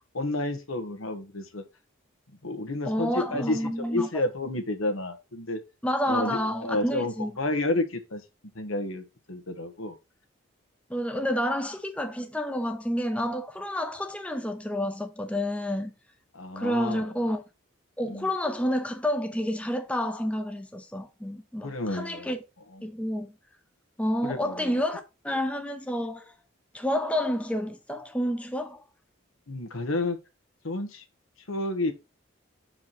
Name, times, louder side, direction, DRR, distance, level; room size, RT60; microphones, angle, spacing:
voice 1, 0.1-1.6 2.4-5.6 6.1-8.2 8.5-10.0 16.3-17.1 18.1-18.3 21.6-22.3 24.2-24.7 29.5-30.2 30.6-31.0 31.5-31.9, left 2 dB, 90° left, 1.3 m, -30 dB
voice 2, 2.9-4.1 5.8-7.4 10.9-15.9 16.6-17.4 18.0-22.4 22.8-23.3 24.0-26.3 26.7-28.8, equal, 5° left, 0.6 m, -29 dB
6.1 x 4.8 x 4.2 m
head